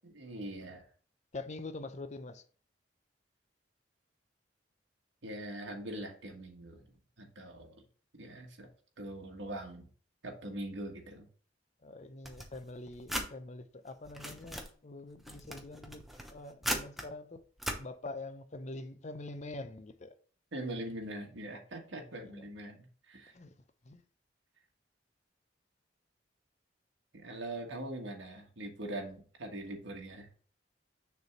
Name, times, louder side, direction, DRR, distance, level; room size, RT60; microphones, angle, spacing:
voice 1, 0.1-0.8 5.2-6.8 7.2-7.8 8.2-8.7 9.0-9.9 10.2-11.3 20.5-23.3 27.1-30.3, right 1 dB, 85° right, 1.5 m, -42 dB
voice 2, 1.3-2.4 11.8-17.4 17.8-20.1 22.2-22.4 23.3-23.6 23.9-24.0, left 2 dB, 40° left, 0.6 m, -45 dB
sound 1, 12.2-13.3 13.9-14.7 15.2-17.1 17.6-17.8, equal, ahead, 0.9 m, -38 dB
6.6 x 3.5 x 5.8 m
head